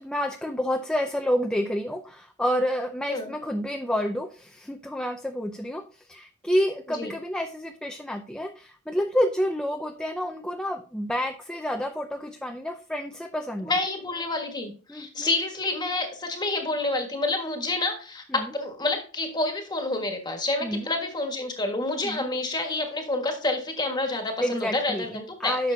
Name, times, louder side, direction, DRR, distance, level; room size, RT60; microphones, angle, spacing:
voice 1, 0.0-13.7 14.9-15.3 18.3-18.5 20.6-20.9 22.0-22.2 24.4-25.7, equal, 5° left, 5 dB, 0.4 m, -29 dB
voice 2, 13.6-25.7, left 2 dB, 20° left, 4 dB, 1.5 m, -28 dB
10.5 x 6.7 x 2.7 m, 0.39 s
head